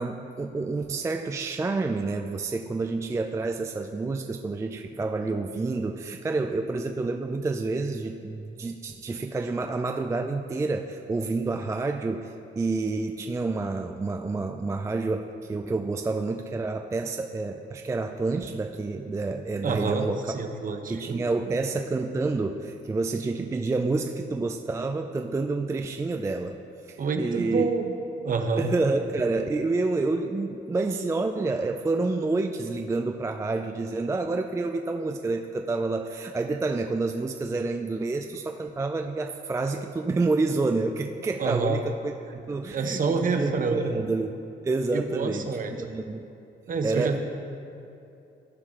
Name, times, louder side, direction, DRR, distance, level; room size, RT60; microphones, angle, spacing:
voice 1, 0.0-20.3 20.9-27.7 28.6-44.3 44.6-46.3 46.8-47.2, right 3 dB, 15° right, 5 dB, 0.3 m, -29 dB
voice 2, 19.6-21.6 27.0-27.9 28.2-28.7 41.4-41.8 42.7-44.0 44.9-45.7 46.7-47.2, right 4 dB, 45° right, 5 dB, 0.8 m, -28 dB
14.0 x 4.8 x 3.7 m, 2.8 s
cardioid pair, 90°, 20 cm